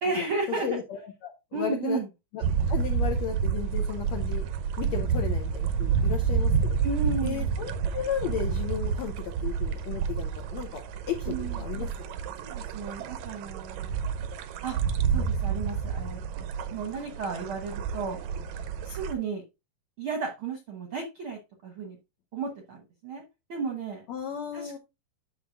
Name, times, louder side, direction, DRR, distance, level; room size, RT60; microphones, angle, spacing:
voice 1, 0.0-0.8 1.5-2.1 6.8-7.5 11.3-11.6 12.4-14.0 14.6-14.8 15.1-16.4 16.7-18.2 18.8-19.4 20.0-22.0 22.3-23.2 23.5-24.0 24.5-24.8, right 4 dB, 65° right, 3 dB, 1.3 m, -33 dB
voice 2, 0.6-2.0 2.3-4.5 4.8-6.8 7.2-10.8 11.1-12.1 24.1-24.8, left 8 dB, 75° left, 3 dB, 1.6 m, -34 dB
sound 1, 2.4-19.1, right 6 dB, 80° right, 1.7 m, -29 dB
9.6 x 6.4 x 2.5 m, 0.24 s
omnidirectional pair, 4.2 m